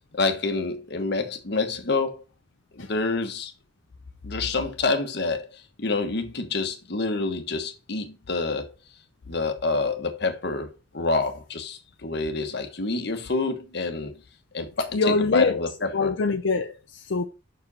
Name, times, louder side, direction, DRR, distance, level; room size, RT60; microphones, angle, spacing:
voice 1, 0.0-2.2 2.7-3.5 4.2-5.5 5.8-8.7 9.3-14.2 14.5-16.1, left 3 dB, 60° left, 1.3 m, -27 dB
voice 2, 14.9-15.6 15.9-17.3, left 4 dB, 80° left, 0.6 m, -24 dB
6.2 x 4.9 x 4.1 m
head